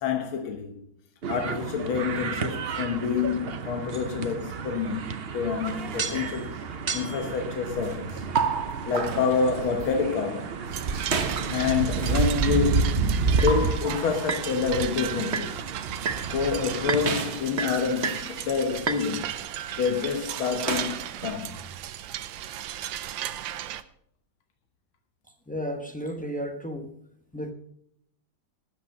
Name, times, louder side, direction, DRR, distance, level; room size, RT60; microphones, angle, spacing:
voice 1, 0.0-0.8 1.3-6.5 6.9-8.2 8.9-10.6 11.5-15.6 16.3-19.3 19.8-21.6, left 6 dB, 80° left, 2.0 m, -28 dB
sound 1, 1.2-17.2, right 5 dB, 90° right, 0.5 m, -30 dB
sound 2, 5.7-6.6 6.9-7.3 7.8-10.2 10.9-12.4 13.2-14.5 14.9-15.6 16.1-16.3 16.9-18.4 18.7-19.0 19.8-21.3, right 5 dB, 40° right, 1.1 m, -31 dB
sound 3, 10.7-23.8, right 12 dB, 75° right, 1.4 m, -36 dB
voice 2, 25.5-26.9 27.3-27.5, equal, 10° left, 0.4 m, -33 dB
13.0 x 9.0 x 5.5 m
omnidirectional pair, 2.2 m